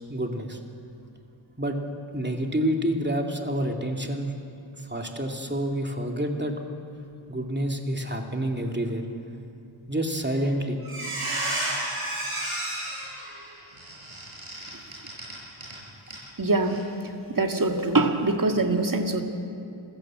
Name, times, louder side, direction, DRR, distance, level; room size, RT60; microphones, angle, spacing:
voice 1, 0.1-0.6 1.6-1.8 2.1-4.3 4.8-6.6 7.3-9.0 9.9-10.8, right 1 dB, 20° right, 2 dB, 2.5 m, -28 dB
Squeak, 10.4-10.5 10.8-15.8 16.1-16.2 16.6-16.8, right 1 dB, 85° right, 7.1 m, -32 dB
voice 2, 16.4-16.8 17.3-19.2, right 2 dB, 40° right, 4 dB, 2.1 m, -23 dB
27.0 x 15.5 x 7.7 m, 2.6 s
wide cardioid pair, 65°, 50 cm